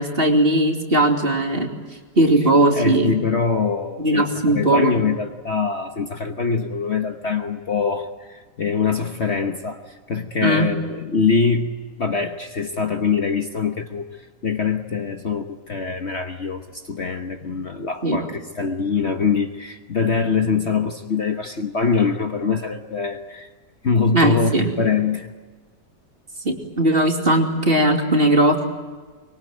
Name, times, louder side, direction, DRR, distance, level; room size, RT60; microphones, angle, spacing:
voice 1, 0.0-1.7 2.2-3.2 4.0-4.9 10.4-10.7 18.0-18.2 24.1-24.7 26.4-28.7, right 1 dB, 35° right, 2 dB, 3.0 m, -18 dB
voice 2, 2.7-14.1 14.4-23.5 23.8-25.3, left 5 dB, 45° left, 5 dB, 1.4 m, -23 dB
24.5 x 23.0 x 9.2 m, 1.4 s
omnidirectional pair, 1.8 m